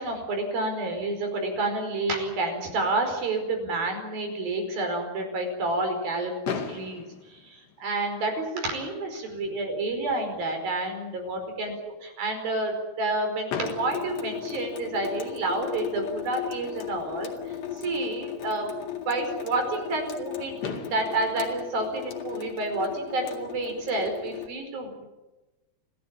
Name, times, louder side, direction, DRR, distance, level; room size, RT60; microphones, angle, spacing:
voice 1, 0.0-7.0 7.3-18.7 19.1-25.0, right 2 dB, 60° right, 4 dB, 6.6 m, -29 dB
Fireworks, 6.4-8.5 9.3-9.4 9.6-9.8 10.1-10.2 13.5-15.3 17.0-17.1 20.2-20.3 20.6-22.9, left 6 dB, 90° left, 4.6 m, -38 dB
Water tap faucet / Sink (filling or washing) / Drip, 13.6-24.5, left 10 dB, 55° left, 3.4 m, -37 dB
27.5 x 17.0 x 8.8 m, 1.1 s
omnidirectional pair, 4.8 m